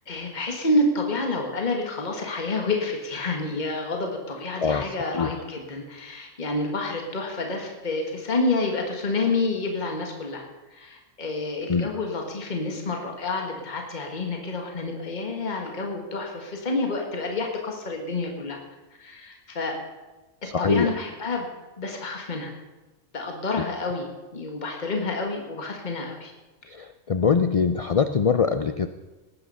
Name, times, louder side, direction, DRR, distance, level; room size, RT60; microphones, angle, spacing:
voice 1, 0.1-10.4 10.7-18.6 19.0-19.8 20.6-21.5 21.8-22.5 23.1-26.3, left 2 dB, 35° left, 2 dB, 1.8 m, -28 dB
voice 2, 20.5-20.9 26.7-28.9, left 5 dB, 60° left, 10 dB, 0.3 m, -23 dB
18.0 x 9.8 x 5.6 m, 1.1 s
omnidirectional pair, 1.3 m